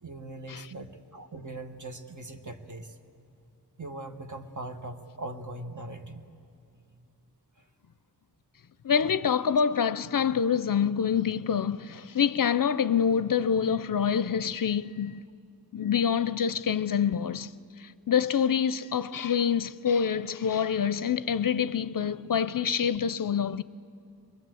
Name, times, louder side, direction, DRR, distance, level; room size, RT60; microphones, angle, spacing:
voice 1, 0.0-3.0 3.8-6.2 7.6-7.7, right 2 dB, 50° right, 1.4 m, -40 dB
voice 2, 8.8-15.2 15.7-17.5 17.8-23.6, left 7 dB, 60° left, 0.5 m, -26 dB
23.0 x 21.0 x 7.8 m
wide cardioid pair, 45°, 39 cm